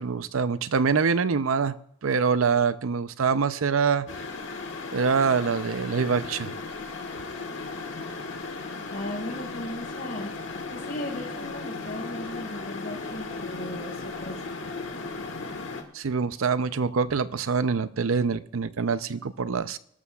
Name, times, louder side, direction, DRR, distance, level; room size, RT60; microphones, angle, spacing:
voice 1, 0.0-1.8 2.0-4.1 4.9-6.6 15.9-19.8, right 5 dB, 80° right, 14 dB, 0.6 m, -25 dB
sound 1, 4.1-15.8, left 3 dB, 65° left, 1.6 m, -36 dB
voice 2, 8.9-10.3 10.7-14.4, left 1 dB, 45° left, -2 dB, 5.0 m, -37 dB
23.5 x 12.5 x 2.4 m, 0.76 s
head